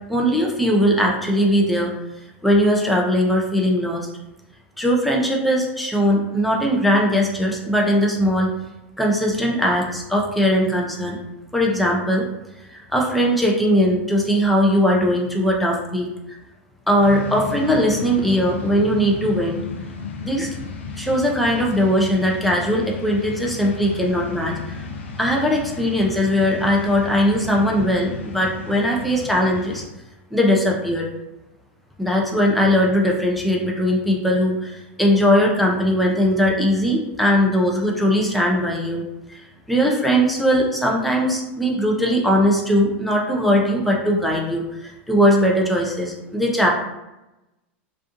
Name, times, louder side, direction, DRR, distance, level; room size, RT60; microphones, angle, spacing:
voice 1, 0.1-1.9 2.4-4.1 4.8-8.5 9.0-11.2 11.5-12.2 12.7-16.1 16.9-19.6 20.2-20.5 21.0-24.5 25.2-29.8 30.3-31.1 32.0-39.0 39.3-46.7, equal, ahead, -2 dB, 0.5 m, -19 dB
sound 1, 17.0-29.9, left 5 dB, 80° left, 0.5 m, -34 dB
2.5 x 2.3 x 2.5 m, 0.94 s
hypercardioid pair, 100°, 6 cm